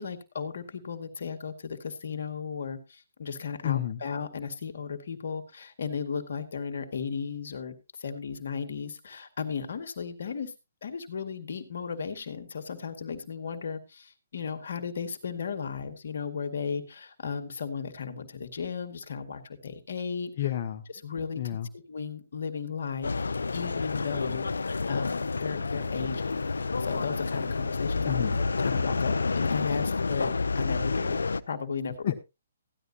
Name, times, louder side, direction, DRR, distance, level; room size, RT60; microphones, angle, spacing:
voice 1, 0.0-10.5 10.8-20.3 21.0-23.1 23.5-31.2 31.5-32.1, left 6 dB, 70° left, 7 dB, 2.0 m, -35 dB
voice 2, 3.6-4.0 20.4-20.8 21.4-21.7 28.0-28.4 32.0-32.2, left 12 dB, 45° left, 5 dB, 0.8 m, -30 dB
sound 1, 23.0-31.4, left 4 dB, 90° left, 0.6 m, -29 dB
15.0 x 11.0 x 2.8 m, 0.26 s
hypercardioid pair, 145°, 0 cm